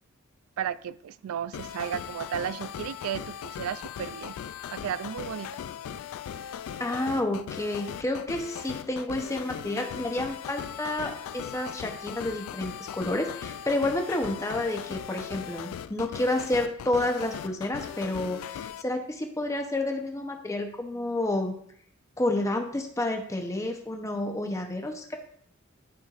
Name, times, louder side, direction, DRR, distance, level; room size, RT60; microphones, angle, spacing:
voice 1, 0.6-4.4 4.7-5.5, right 9 dB, 85° right, 0.3 m, -34 dB
sound 1, 1.5-18.8, left 9 dB, 85° left, 0.3 m, -39 dB
voice 2, 6.8-21.5 22.2-25.2, left 1 dB, 15° left, 0.8 m, -30 dB
12.0 x 4.4 x 2.5 m
head